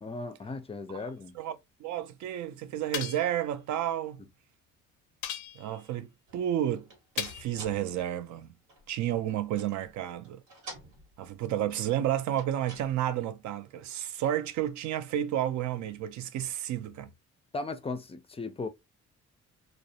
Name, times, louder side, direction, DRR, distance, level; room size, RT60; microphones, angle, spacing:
voice 1, 0.0-1.4 17.5-18.7, left 3 dB, 20° left, 0.4 m, -37 dB
voice 2, 1.4-4.2 5.5-6.9 7.2-8.5 8.9-10.4 11.2-17.1, right 11 dB, 70° right, 0.4 m, -31 dB
sound 1, 2.9-3.4 5.2-5.8 7.2-7.6, left 10 dB, 90° left, 0.5 m, -37 dB
sound 2, 6.3-10.0 10.2-11.5 12.2-13.2, right 2 dB, 85° right, 1.0 m, -50 dB
2.4 x 2.0 x 2.7 m
cardioid pair, 90°, 30 cm